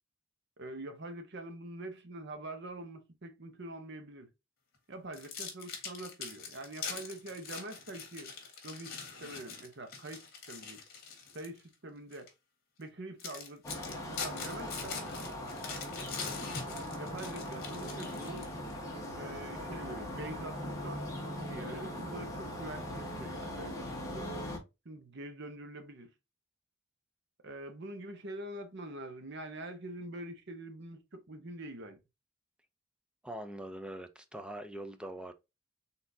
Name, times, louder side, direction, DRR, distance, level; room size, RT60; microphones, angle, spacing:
voice 1, 0.6-4.3 4.9-8.3 8.6-10.8 11.3-12.3 12.8-15.0 17.0-18.5 19.1-21.0 21.5-23.9 24.1-24.3 24.8-26.1 27.4-32.0, right 1 dB, 55° right, 0.9 m, -45 dB
sound 1, 5.1-11.6 12.1-12.3 12.8-12.9 13.2-18.7, left 5 dB, 50° left, 1.6 m, -43 dB
sound 2, 13.6-24.6, left 1 dB, 15° left, 1.3 m, -40 dB
voice 2, 33.2-35.3, right 1 dB, 5° right, 0.4 m, -43 dB
4.3 x 3.7 x 2.7 m
head